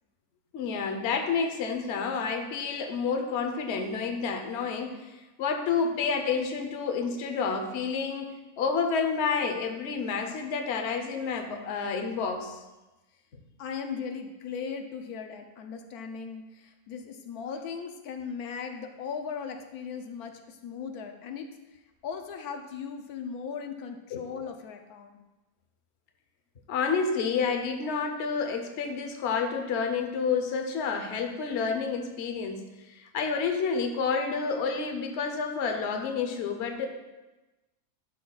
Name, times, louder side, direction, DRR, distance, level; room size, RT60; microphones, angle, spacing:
voice 1, 0.5-5.1 5.4-12.6 24.1-24.3 26.7-32.6 32.9-36.9, left 5 dB, 55° left, 5 dB, 0.9 m, -29 dB
voice 2, 13.6-25.2, left 6 dB, 80° left, 5 dB, 1.1 m, -38 dB
11.5 x 6.1 x 2.3 m, 1.1 s
omnidirectional pair, 1.6 m